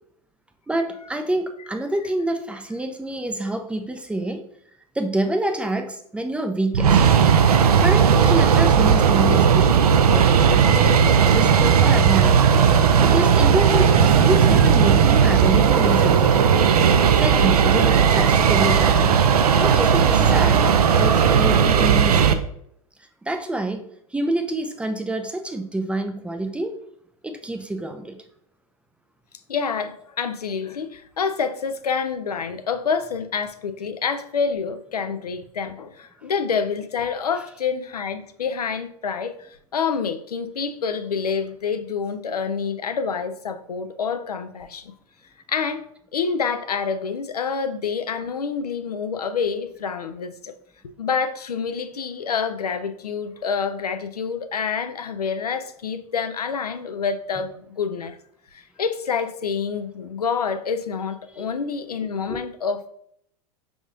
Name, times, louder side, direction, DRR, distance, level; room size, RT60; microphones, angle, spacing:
voice 1, 0.7-4.4 5.0-7.0 7.8-9.7 10.1-12.7 13.0-16.5 17.0-19.2 19.5-20.6 20.9-22.4 23.2-23.8 24.1-26.8 27.2-28.2 30.5-30.6 37.3-37.4 57.3-57.4 61.3-61.5 62.3-62.4, right 1 dB, 5° right, 0.3 m, -27 dB
sound 1, 6.7-22.3, right 7 dB, 80° right, 0.4 m, -16 dB
voice 2, 29.5-44.9 45.5-45.8 46.1-50.5 51.0-58.2 58.5-62.9, left 6 dB, 90° left, 0.4 m, -27 dB
5.1 x 3.5 x 2.5 m
hypercardioid pair, 95°, 19 cm